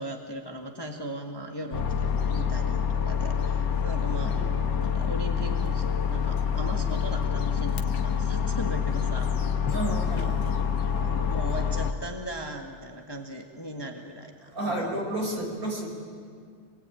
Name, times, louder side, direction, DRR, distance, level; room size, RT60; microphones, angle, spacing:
voice 1, 0.0-4.4 4.8-9.3 9.9-10.3 10.9-15.0, right 1 dB, 15° left, 2 dB, 1.5 m, -38 dB
sound 1, 1.7-11.9, left 7 dB, 80° left, 2.0 m, -27 dB
voice 2, 4.2-4.5 8.5-8.6 9.7-10.7 14.5-15.9, right 1 dB, 55° right, -1 dB, 5.7 m, -32 dB
26.0 x 22.0 x 9.1 m, 2.2 s
omnidirectional pair, 1.8 m